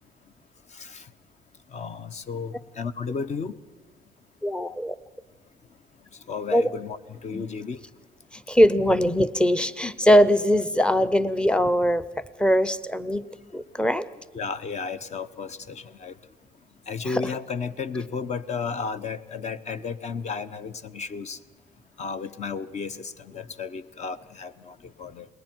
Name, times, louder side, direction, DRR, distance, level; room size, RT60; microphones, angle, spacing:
voice 1, 1.7-3.5 6.3-7.8 14.3-16.1 16.9-21.4 22.0-25.3, left 5 dB, 40° left, 14 dB, 0.9 m, -33 dB
voice 2, 4.4-5.0 6.5-6.7 7.3-7.4 8.3-12.1 12.4-13.2 13.5-14.1 17.1-17.4, equal, 5° left, 15 dB, 0.7 m, -21 dB
29.0 x 20.0 x 4.6 m, 1.3 s
cardioid pair, 110°, 17 cm